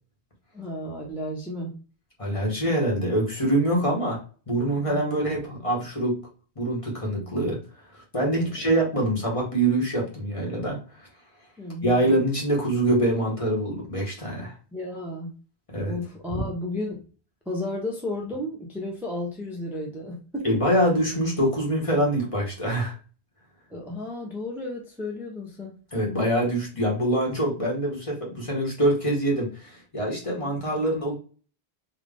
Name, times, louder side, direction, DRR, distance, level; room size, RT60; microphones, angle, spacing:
voice 1, 0.5-1.7 4.9-5.2 8.4-8.7 11.6-11.9 14.7-15.3 15.8-17.0 17.5-20.5 23.7-25.8 30.3-30.5, left 1 dB, ahead, -1 dB, 0.7 m, -33 dB
voice 2, 2.2-4.2 4.5-6.2 6.6-7.6 7.9-10.8 11.8-14.5 15.7-16.0 16.3-16.5 20.4-22.9 25.9-31.2, right 1 dB, 30° left, -2 dB, 1.2 m, -24 dB
3.9 x 2.4 x 3.5 m, 0.37 s
omnidirectional pair, 1.1 m